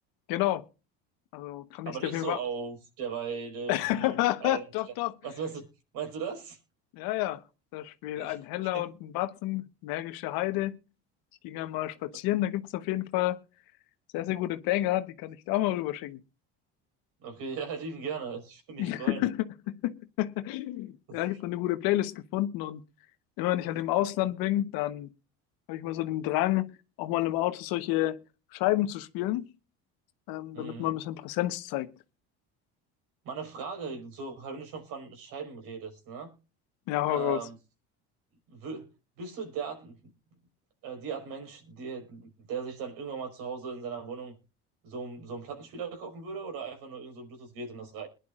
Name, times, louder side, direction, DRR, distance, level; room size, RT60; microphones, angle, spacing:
voice 1, 0.3-0.7 1.3-2.4 3.7-5.1 6.9-7.4 7.7-10.8 11.4-13.4 14.1-16.2 18.8-22.8 23.4-25.1 25.7-26.7 27.0-28.2 28.5-29.5 30.3-31.9 36.9-37.4, left 15 dB, 75° left, 1.2 m, -30 dB
voice 2, 1.9-4.1 4.4-4.6 5.2-5.7 5.9-6.6 8.2-8.4 8.7-8.8 17.2-19.3 21.1-21.2 30.5-30.9 33.2-36.3 37.1-37.6 38.5-38.9 39.2-40.0 40.8-44.3 44.8-48.1, right 5 dB, 70° right, 5.0 m, -38 dB
22.0 x 11.0 x 2.5 m
supercardioid pair, 85°, 36 cm